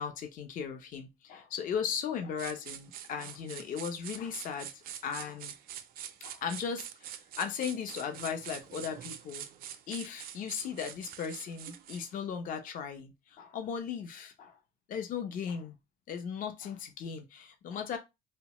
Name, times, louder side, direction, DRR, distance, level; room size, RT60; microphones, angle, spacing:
voice 1, 0.0-4.7 5.0-5.5 6.2-9.4 9.9-14.5 14.9-15.7 16.1-18.0, left 7 dB, 55° left, 0.5 m, -37 dB
sound 1, 2.4-12.1, right 10 dB, 60° right, 0.4 m, -45 dB
2.7 x 2.1 x 2.9 m
cardioid pair, 110°, 17 cm